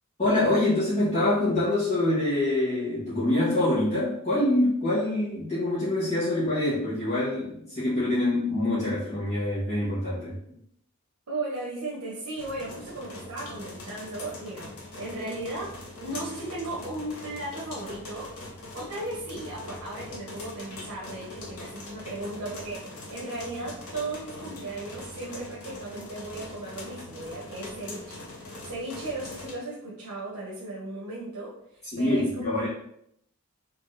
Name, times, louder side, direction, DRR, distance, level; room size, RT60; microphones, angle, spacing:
voice 1, 0.2-10.4 31.9-32.7, left 1 dB, 30° left, -12 dB, 1.5 m, -25 dB
voice 2, 11.3-15.7 16.0-18.3 18.7-32.7, right 2 dB, 85° right, -5 dB, 1.1 m, -36 dB
sound 1, 12.4-29.5, left 2 dB, 75° left, 1.2 m, -42 dB
4.3 x 3.3 x 3.3 m, 0.73 s
head